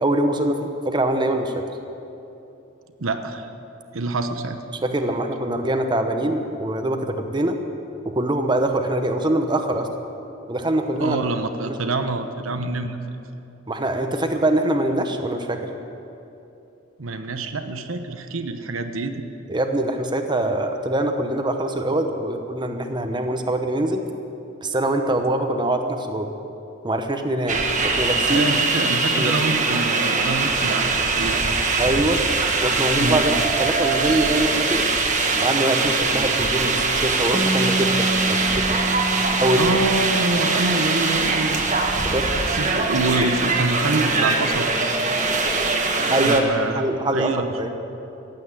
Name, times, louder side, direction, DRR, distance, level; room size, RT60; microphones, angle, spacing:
voice 1, 0.0-1.5 4.8-7.6 8.0-9.9 10.5-11.3 11.6-11.8 13.7-15.6 19.5-24.0 24.6-26.3 26.8-28.5 29.2-29.3 31.8-32.2 32.6-34.9 35.4-38.9 39.4-39.7 42.0-42.3 46.1-47.7, right 1 dB, 20° right, 5 dB, 0.9 m, -23 dB
voice 2, 3.0-3.5 3.9-4.6 11.0-13.0 17.0-19.2 28.3-31.5 33.0-33.2 39.5-41.6 42.4-44.7 46.0-46.8 47.1-47.6, right 2 dB, 80° right, 7 dB, 0.9 m, -26 dB
sound 1, 27.5-46.4, right 3 dB, 40° right, 1.4 m, -22 dB
Bass guitar, 37.3-43.6, right 1 dB, 5° left, 0.9 m, -30 dB
15.0 x 8.7 x 9.7 m, 2.8 s
head